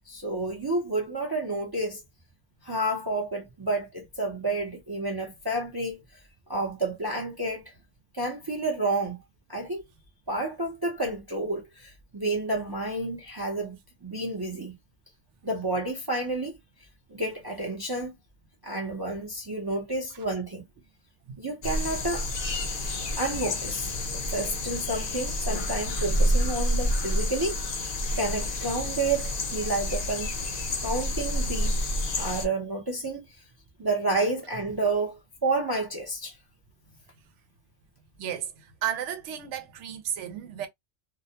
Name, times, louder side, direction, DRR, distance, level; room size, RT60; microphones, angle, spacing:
voice 1, 0.1-2.0 2.6-6.0 6.5-7.6 8.1-9.2 9.5-9.8 10.3-13.8 14.0-14.7 15.4-16.6 17.1-18.1 18.6-20.6 21.4-22.3 23.2-30.3 30.8-31.7 32.2-33.2 33.8-36.4, right 2 dB, 30° right, 0.4 m, -30 dB
sound 1, 21.6-32.5, left 1 dB, 45° left, 0.6 m, -29 dB
voice 2, 38.2-40.7, right 10 dB, 90° right, 0.9 m, -33 dB
2.3 x 2.1 x 2.7 m
omnidirectional pair, 1.2 m